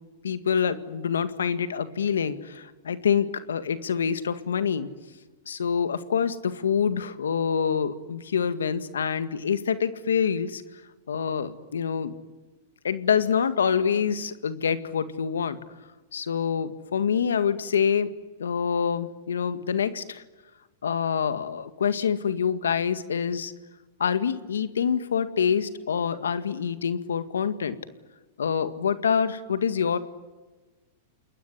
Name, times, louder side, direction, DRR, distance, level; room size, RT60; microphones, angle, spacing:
voice 1, 0.2-4.9 5.5-10.6 11.1-12.2 12.8-15.6 16.1-18.1 18.4-20.2 20.8-23.5 24.0-27.8 28.4-30.0, left 7 dB, 85° left, 12 dB, 1.9 m, -26 dB
29.0 x 21.5 x 9.7 m, 1.2 s
hypercardioid pair, 115°, 0 cm